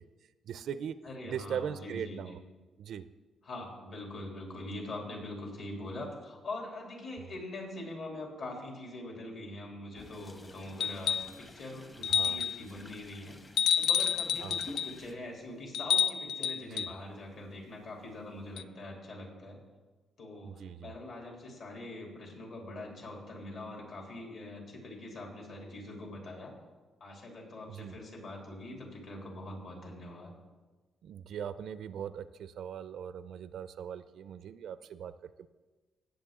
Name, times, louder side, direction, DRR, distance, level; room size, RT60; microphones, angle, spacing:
voice 1, 0.5-1.0 1.3-2.4 2.8-3.0 12.1-12.4 14.4-14.6 16.5-16.9 20.4-20.9 27.7-27.9 31.0-35.1 35.4-35.5, right 8 dB, 70° right, 14 dB, 0.4 m, -40 dB
voice 2, 1.0-2.4 3.4-13.4 13.8-19.6 20.2-26.5 27.0-30.3, left 1 dB, 60° left, 0 dB, 3.2 m, -43 dB
sound 1, 10.0-15.2, left 1 dB, 25° left, 1.0 m, -51 dB
sound 2, 10.8-11.4 12.0-12.6 13.6-15.0 15.7-16.9 18.6-18.7, left 8 dB, 80° left, 0.4 m, -29 dB
18.0 x 7.5 x 3.7 m, 1.3 s
cardioid pair, 115°, 0 cm